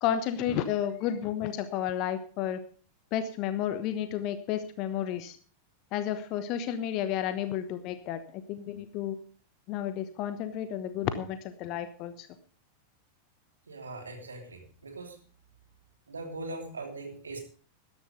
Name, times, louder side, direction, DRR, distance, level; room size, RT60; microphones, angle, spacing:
voice 1, 0.0-2.6 3.1-5.4 5.9-9.2 9.7-12.3, left 10 dB, 40° left, 11 dB, 1.1 m, -32 dB
voice 2, 13.7-15.2 16.1-17.4, right 2 dB, 75° right, 3 dB, 3.0 m, -40 dB
13.5 x 10.5 x 5.2 m, 0.42 s
figure-of-eight pair, 90°, 0 cm